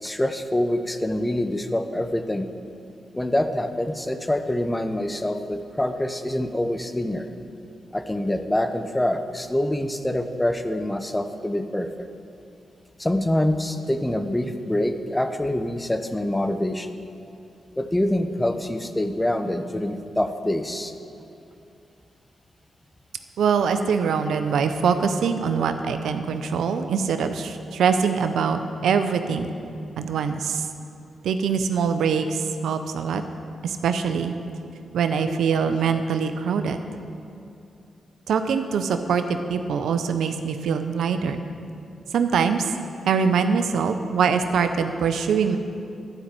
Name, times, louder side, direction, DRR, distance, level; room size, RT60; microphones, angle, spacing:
voice 1, 0.0-2.5 3.1-7.3 7.9-12.1 13.0-17.0 17.8-20.9, left 1 dB, 15° left, 8 dB, 0.8 m, -25 dB
voice 2, 23.4-29.5 30.0-30.7 31.2-33.2 33.6-34.3 34.9-36.8 38.3-41.4 42.1-42.7 43.0-45.6, right 6 dB, 80° right, 8 dB, 0.6 m, -23 dB
11.5 x 5.5 x 7.5 m, 2.6 s
supercardioid pair, 50°, 0 cm